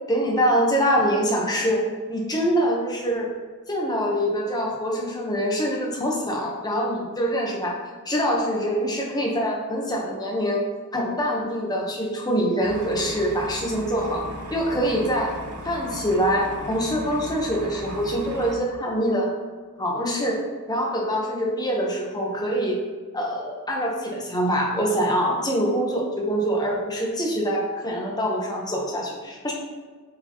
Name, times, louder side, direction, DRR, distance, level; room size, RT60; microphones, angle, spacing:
voice 1, 0.1-1.8 2.1-3.3 3.7-7.7 8.0-10.6 10.9-14.2 14.5-15.3 15.6-19.3 19.8-20.4 20.7-22.8 23.1-29.5, equal, 20° left, -2 dB, 1.1 m, -24 dB
sound 1, 12.6-18.6, right 1 dB, 70° right, 0.9 m, -37 dB
7.6 x 4.7 x 3.1 m, 1.4 s
head